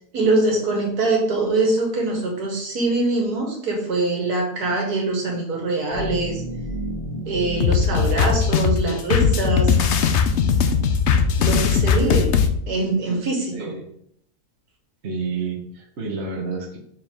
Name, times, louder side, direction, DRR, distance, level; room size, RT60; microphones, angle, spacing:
voice 1, 0.1-6.4 7.3-9.7 11.4-12.3 12.7-13.6, right 2 dB, 75° right, 1 dB, 1.9 m, -23 dB
sound 1, 5.9-10.7, right 1 dB, 25° left, 1.8 m, -34 dB
sound 2, 7.6-12.5, left 6 dB, 65° left, 0.7 m, -19 dB
voice 2, 13.5-13.9 15.0-16.8, right 4 dB, 45° right, 1 dB, 1.3 m, -29 dB
5.9 x 4.7 x 3.6 m, 0.68 s
omnidirectional pair, 1.7 m